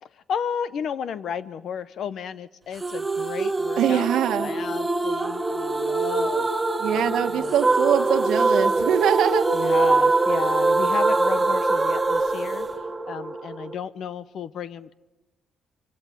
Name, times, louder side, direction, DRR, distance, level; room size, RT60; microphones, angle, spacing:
voice 1, 0.0-6.5 6.9-7.5 9.5-12.7 13.1-15.0, left 7 dB, 60° left, 16 dB, 0.7 m, -33 dB
sound 1, 2.8-13.7, right 3 dB, 15° right, 0.9 m, -23 dB
voice 2, 3.8-4.5 6.8-9.5, right 9 dB, 90° right, 7 dB, 1.3 m, -23 dB
24.5 x 17.5 x 7.9 m, 1.1 s
cardioid pair, 155°, 0 cm